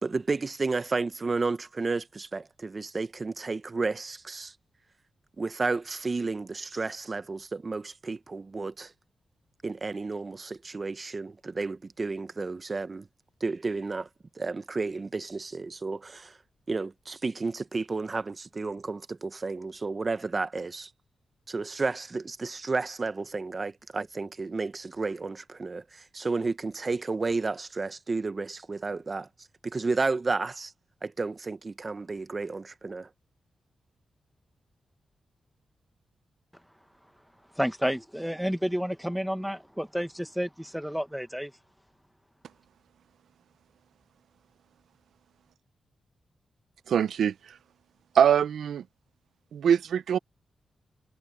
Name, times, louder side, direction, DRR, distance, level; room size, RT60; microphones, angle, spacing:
voice 1, 0.0-4.5 5.4-8.9 9.6-13.1 13.4-14.1 14.3-16.4 16.7-20.9 21.5-29.3 29.6-30.7 31.0-33.1, right 3 dB, 35° right, 1.0 m, -32 dB
voice 2, 37.6-41.5, equal, ahead, 1.5 m, -30 dB
voice 3, 46.9-47.3 48.1-48.8 49.5-50.2, right 8 dB, 85° right, 0.6 m, -23 dB
cardioid pair, 80°, 0 cm